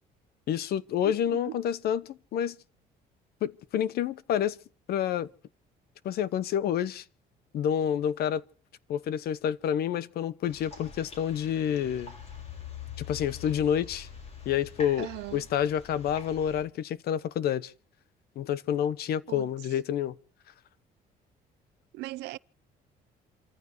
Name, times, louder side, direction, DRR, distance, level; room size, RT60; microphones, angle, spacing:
voice 1, 0.5-2.6 3.4-4.6 4.9-5.3 6.0-7.0 7.5-8.4 8.9-12.1 13.1-14.1 14.4-17.7 18.4-20.2, left 9 dB, 65° left, 1.0 m, -28 dB
voice 2, 1.0-1.6 15.0-15.5 19.3-19.5 21.9-22.4, right 18 dB, 85° right, 0.6 m, -39 dB
sound 1, 10.5-16.6, left 7 dB, 40° left, 4.9 m, -44 dB
27.5 x 14.5 x 3.1 m
cardioid pair, 110°, 17 cm